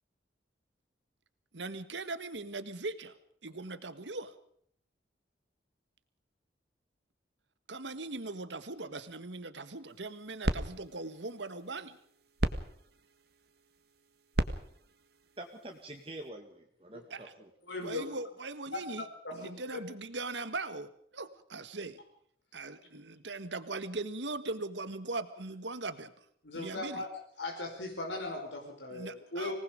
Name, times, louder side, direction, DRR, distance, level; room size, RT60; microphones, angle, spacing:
voice 1, 1.5-3.1 3.4-4.3 7.7-12.0 17.1-17.3 17.8-19.0 19.3-22.0 22.5-26.1 26.5-27.0 28.9-29.5, right 3 dB, 80° right, 12 dB, 1.6 m, -40 dB
sound 1, 9.9-16.3, right 1 dB, 60° right, 1.8 m, -38 dB
voice 2, 15.4-17.5, right 1 dB, 30° right, 2 dB, 2.1 m, -46 dB
voice 3, 17.7-18.1 18.7-18.8 19.2-19.8 26.4-27.1 27.4-29.5, left 2 dB, 90° left, 0 dB, 5.2 m, -38 dB
26.0 x 19.5 x 5.2 m, 0.66 s
head